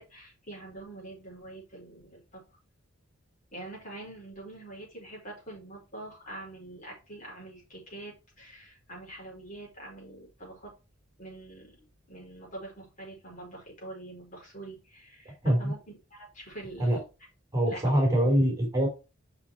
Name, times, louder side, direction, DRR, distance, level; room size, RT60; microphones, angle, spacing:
voice 1, 0.0-2.4 3.5-10.7 11.2-17.1 17.6-18.0, right 2 dB, 40° left, -2 dB, 4.8 m, -45 dB
voice 2, 17.5-18.9, right 1 dB, 15° right, 0 dB, 3.6 m, -24 dB
5.9 x 5.7 x 4.6 m, 0.29 s
head